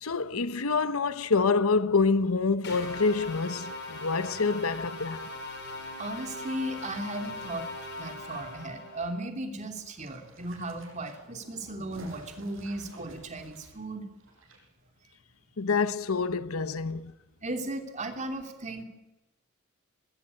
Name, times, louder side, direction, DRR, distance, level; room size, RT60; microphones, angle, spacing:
voice 1, 0.0-5.3 15.6-17.1, left 4 dB, 85° left, 0.9 m, -27 dB
sound 1, 2.6-9.1, left 2 dB, 55° left, 5.5 m, -40 dB
voice 2, 6.0-7.7 8.0-14.0 17.4-18.8, right 1 dB, 35° right, 3.0 m, -36 dB
sound 2, 9.7-14.6 14.8-14.9, right 1 dB, 65° right, 6.5 m, -51 dB
21.0 x 16.5 x 9.8 m
head